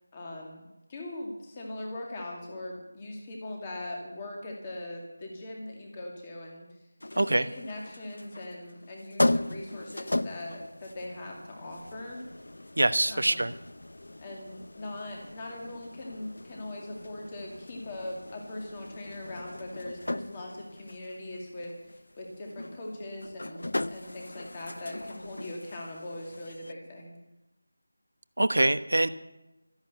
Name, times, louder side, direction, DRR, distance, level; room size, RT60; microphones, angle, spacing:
voice 1, 0.1-0.6 0.9-6.7 7.1-12.2 13.1-13.4 14.2-27.1, left 1 dB, 15° left, 0 dB, 2.3 m, -40 dB
sound 1, 7.0-26.7, left 1 dB, 75° left, 0.7 m, -37 dB
voice 2, 7.2-7.5 12.8-13.5 28.4-29.1, right 1 dB, 75° right, 13 dB, 1.0 m, -24 dB
13.5 x 10.5 x 8.2 m, 0.96 s
figure-of-eight pair, 175°, 0 cm